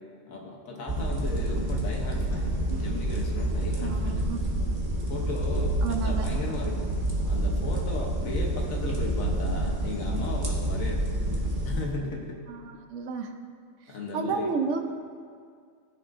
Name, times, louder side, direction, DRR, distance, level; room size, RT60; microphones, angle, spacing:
voice 1, 0.3-4.2 5.1-6.9 7.2-11.1 11.6-12.4 13.9-14.5, left 2 dB, 85° left, -1 dB, 1.5 m, -36 dB
sound 1, 0.9-11.8, right 1 dB, 40° right, 1.4 m, -28 dB
voice 2, 3.8-4.4 5.8-6.3 12.5-13.3 14.1-14.8, right 5 dB, 70° right, 6 dB, 1.0 m, -31 dB
14.0 x 6.2 x 2.6 m, 2.1 s
omnidirectional pair, 1.4 m